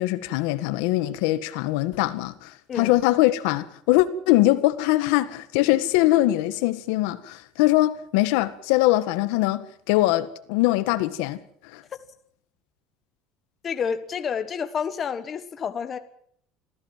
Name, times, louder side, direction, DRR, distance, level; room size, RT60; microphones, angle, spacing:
voice 1, 0.0-11.4 11.7-11.8, left 16 dB, 80° left, 1.7 m, -22 dB
voice 2, 13.6-16.0, left 7 dB, 25° left, 1.4 m, -29 dB
26.0 x 15.5 x 7.5 m
cardioid pair, 175°, 0 cm